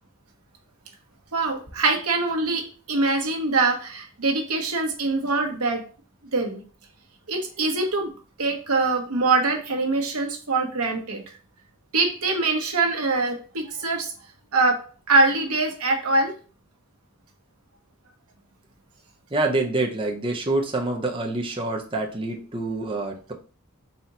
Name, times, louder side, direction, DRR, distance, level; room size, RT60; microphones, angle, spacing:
voice 1, 1.3-5.8 6.3-6.6 7.3-8.1 8.4-11.2 11.9-14.1 14.5-14.8 15.1-16.3, right 3 dB, 80° right, 3 dB, 1.1 m, -23 dB
voice 2, 19.3-23.3, right 2 dB, 25° right, 1 dB, 0.7 m, -26 dB
4.2 x 2.9 x 3.9 m, 0.38 s
head